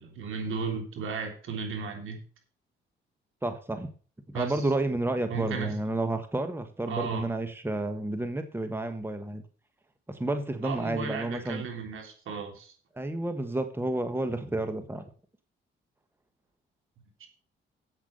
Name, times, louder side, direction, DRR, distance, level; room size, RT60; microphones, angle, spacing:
voice 1, 0.0-2.2 4.3-4.6 5.3-5.7 6.9-7.3 10.6-12.7 17.2-17.3, right 5 dB, 75° right, 4 dB, 3.4 m, -35 dB
voice 2, 3.4-3.9 4.3-9.4 10.1-11.7 12.9-15.1, right 2 dB, 10° right, 8 dB, 1.3 m, -31 dB
8.3 x 8.3 x 6.6 m, 0.41 s
cardioid pair, 80°, 21 cm